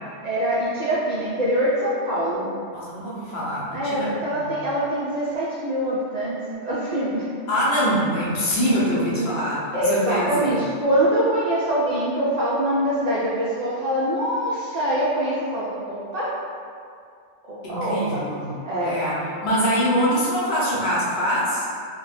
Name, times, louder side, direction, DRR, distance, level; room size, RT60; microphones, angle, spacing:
voice 1, 0.2-2.5 3.7-7.3 9.2-9.3 9.7-16.3 17.5-18.3 18.6-19.0, right 1 dB, 75° right, -9 dB, 0.3 m, -24 dB
voice 2, 2.7-4.6 7.5-10.5 17.6-18.6 18.8-21.6, equal, 65° left, -7 dB, 0.9 m, -24 dB
2.2 x 2.1 x 3.1 m, 2.3 s
omnidirectional pair, 1.2 m